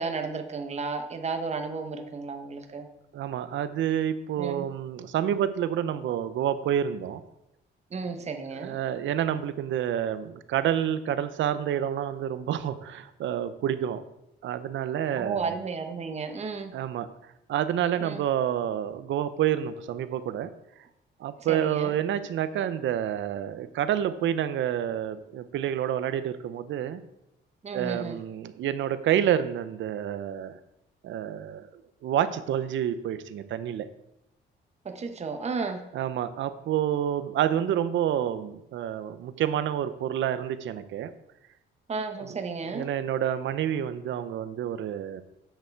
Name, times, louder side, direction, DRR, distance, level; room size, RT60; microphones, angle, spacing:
voice 1, 0.0-2.9 4.4-4.7 7.9-8.8 15.2-16.8 18.0-18.2 21.5-21.9 27.6-28.2 34.8-35.9 41.9-42.9, right 4 dB, 35° right, 5 dB, 1.0 m, -33 dB
voice 2, 3.1-7.2 8.5-14.0 14.4-15.5 16.7-17.1 17.5-20.5 21.2-27.0 27.7-30.6 31.0-31.7 32.0-33.9 35.9-41.1 42.2-42.4 42.7-45.2, right 10 dB, 70° right, 13 dB, 0.7 m, -28 dB
8.1 x 6.5 x 4.6 m, 0.84 s
cardioid pair, 90°, 20 cm